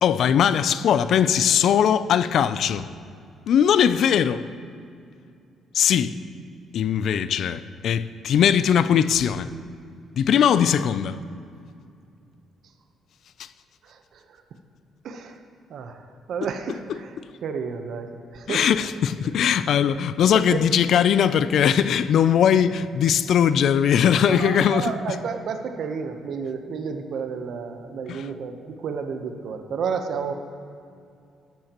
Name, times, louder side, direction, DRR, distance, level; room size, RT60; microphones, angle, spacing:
voice 1, 0.0-2.9 3.5-4.5 5.7-6.2 6.7-9.5 10.2-11.2 13.4-13.5 16.4-17.3 18.5-25.2 28.1-28.3, left 8 dB, 70° left, 0.4 m, -20 dB
voice 2, 13.8-14.4 15.0-15.4 15.7-17.1 17.4-18.7 20.3-20.6 24.3-30.3, right 6 dB, 70° right, 0.9 m, -31 dB
13.5 x 11.5 x 3.0 m
cardioid pair, 90°, 0 cm